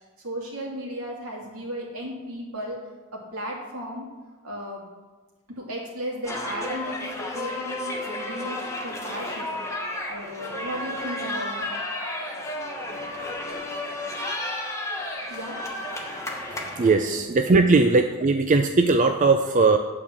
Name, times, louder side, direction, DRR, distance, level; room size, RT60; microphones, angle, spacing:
voice 1, 0.2-2.8 3.1-4.1 4.4-4.8 5.5-9.5 10.1-11.8 15.3-15.6 17.0-17.3 17.6-17.8, equal, 75° right, -3 dB, 2.7 m, -35 dB
sound 1, 6.2-17.0, left 1 dB, 15° left, 1.2 m, -32 dB
voice 2, 16.8-19.8, right 3 dB, 35° right, 5 dB, 0.4 m, -19 dB
9.5 x 4.8 x 7.1 m, 1.4 s
head